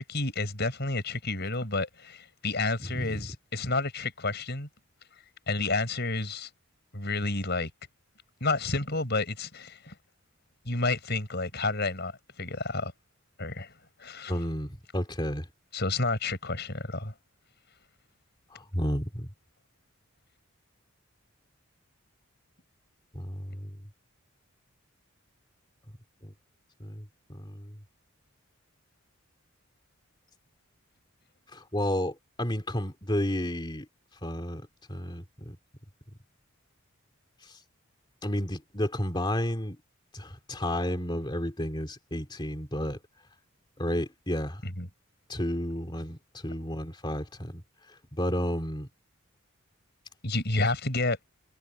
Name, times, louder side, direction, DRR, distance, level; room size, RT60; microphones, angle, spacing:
voice 1, 0.0-4.7 5.5-6.5 6.9-7.7 8.4-9.9 10.6-12.9 13.4-13.7 14.0-14.3 15.7-17.1 44.6-44.9 50.2-51.2, left 3 dB, 50° left, 6.4 m, -30 dB
voice 2, 2.9-3.3 14.3-15.5 18.5-19.3 23.1-23.8 26.2-26.3 26.8-27.8 31.5-33.9 34.2-35.6 38.2-39.8 40.1-43.0 43.8-44.6 45.3-47.6 48.1-48.9, left 1 dB, 20° left, 2.8 m, -32 dB
head